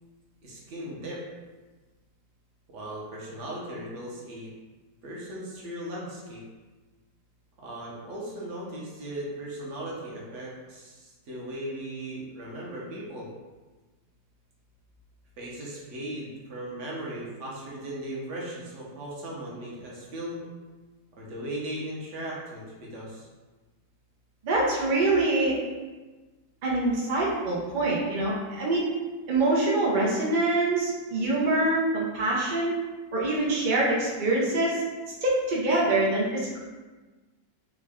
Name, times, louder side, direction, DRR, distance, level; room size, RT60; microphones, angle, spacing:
voice 1, 0.4-1.2 2.7-4.5 5.0-6.5 7.6-13.3 15.4-20.4 21.2-23.3, right 1 dB, 55° right, -4 dB, 0.9 m, -37 dB
voice 2, 24.4-25.6 26.6-28.9 29.3-32.7 33.1-34.8 35.2-36.6, right 2 dB, 80° right, -4 dB, 0.4 m, -25 dB
3.6 x 2.2 x 3.4 m, 1.3 s
omnidirectional pair, 1.8 m